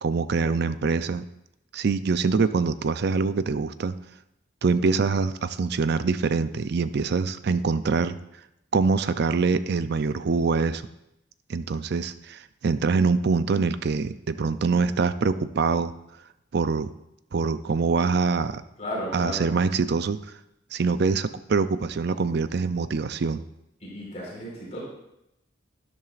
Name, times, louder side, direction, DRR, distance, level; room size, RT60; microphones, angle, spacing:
voice 1, 0.0-1.3 1.7-3.9 4.6-8.2 8.7-10.8 11.5-15.9 16.5-16.9 17.3-18.6 19.1-20.2 20.7-23.4, right 4 dB, 55° right, 13 dB, 0.4 m, -24 dB
voice 2, 18.8-19.5 23.8-24.8, equal, 35° left, -5 dB, 4.2 m, -34 dB
12.5 x 11.0 x 2.5 m, 0.85 s
head